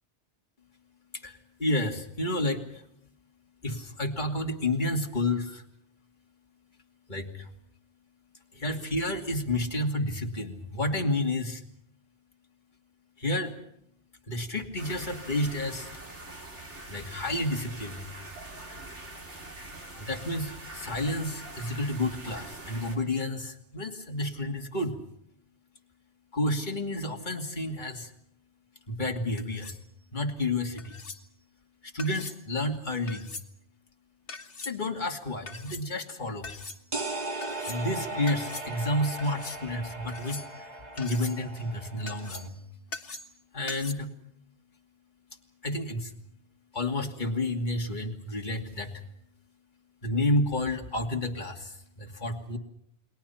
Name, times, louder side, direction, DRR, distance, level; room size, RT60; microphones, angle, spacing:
voice 1, 1.1-2.8 3.6-5.6 7.1-7.5 8.5-11.6 13.2-13.5 14.3-16.0 16.9-18.1 18.7-18.8 19.9-25.0 26.3-28.1 28.9-29.7 30.1-31.0 31.8-33.3 34.6-36.5 37.7-42.6 43.5-44.1 45.6-46.1 46.7-48.9 50.0-52.6, left 1 dB, 45° left, 2 dB, 2.7 m, -30 dB
sound 1, 14.8-23.0, right 2 dB, 85° right, 4.4 m, -44 dB
sound 2, 29.4-29.9 30.8-31.2 32.0-32.4 33.1-33.5 34.3-34.7 35.5-35.8 36.4-36.8 37.4-37.8 38.3-38.7 39.2-39.6 40.1-40.6 41.0-41.4 42.1-42.6 42.9-43.4 43.7-43.9, left 4 dB, 80° left, 2.0 m, -42 dB
sound 3, 36.9-42.5, right 2 dB, 35° right, 2.4 m, -38 dB
30.0 x 21.5 x 5.8 m, 0.74 s
omnidirectional pair, 1.2 m